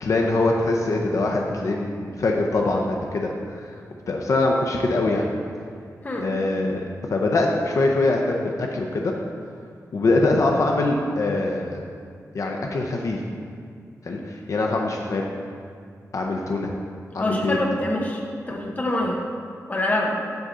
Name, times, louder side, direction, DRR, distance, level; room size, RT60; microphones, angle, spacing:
voice 1, 0.0-3.3 4.1-5.2 6.2-6.8 7.1-9.1 9.9-11.8 12.3-13.2 14.0-15.3 16.1-16.7 17.1-17.6 18.5-18.7, left 2 dB, 60° left, 0 dB, 0.6 m, -23 dB
voice 2, 17.2-18.2 18.5-19.2 19.7-20.2, left 1 dB, 25° left, -1 dB, 0.8 m, -25 dB
8.0 x 3.7 x 6.7 m, 2.2 s
wide cardioid pair, 180°, 6 cm